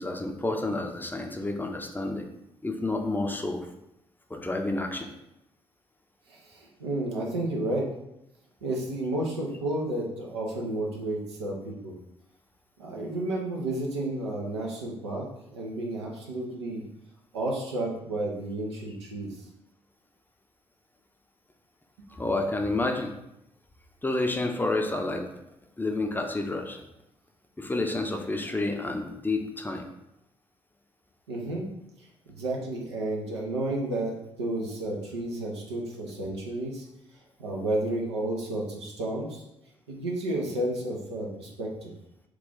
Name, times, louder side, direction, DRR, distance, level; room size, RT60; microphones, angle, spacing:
voice 1, 0.0-2.2 2.6-3.7 4.3-5.1 22.2-23.1 24.0-25.3 25.8-26.8 27.6-29.8, left 2 dB, 15° left, 3 dB, 0.5 m, -29 dB
voice 2, 6.3-7.9 8.6-12.0 12.8-15.3 15.5-16.8 17.3-19.3 22.1-22.2 31.3-31.7 32.0-36.8 37.4-39.4 39.9-41.9, right 1 dB, 85° right, -2 dB, 0.5 m, -31 dB
3.0 x 2.4 x 3.7 m, 0.85 s
figure-of-eight pair, 40°, 14 cm